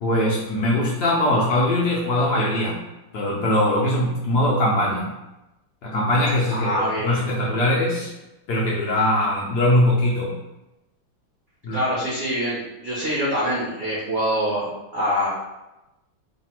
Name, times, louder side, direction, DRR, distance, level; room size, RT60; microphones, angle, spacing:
voice 1, 0.0-2.8 3.1-5.1 5.8-8.1 8.5-10.4 11.6-11.8, left 1 dB, 65° left, -5 dB, 1.0 m, -21 dB
voice 2, 6.5-7.2 11.7-15.3, equal, 70° right, -6 dB, 0.6 m, -25 dB
3.3 x 2.5 x 4.2 m, 0.98 s
omnidirectional pair, 2.3 m